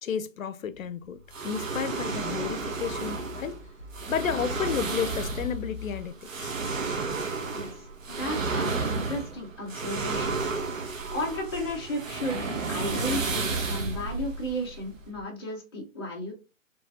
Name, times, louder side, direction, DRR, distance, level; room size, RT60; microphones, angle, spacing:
voice 1, 0.0-3.6 4.1-6.6, left 7 dB, 80° left, 0.6 m, -32 dB
sound 1, 0.7-6.0, left 5 dB, 35° left, 2.0 m, -43 dB
sound 2, 1.3-15.2, right 4 dB, 75° right, 1.2 m, -32 dB
voice 2, 8.1-10.4 11.1-16.3, left 1 dB, 20° left, 0.9 m, -34 dB
4.6 x 3.3 x 2.8 m
hypercardioid pair, 175°, 40 cm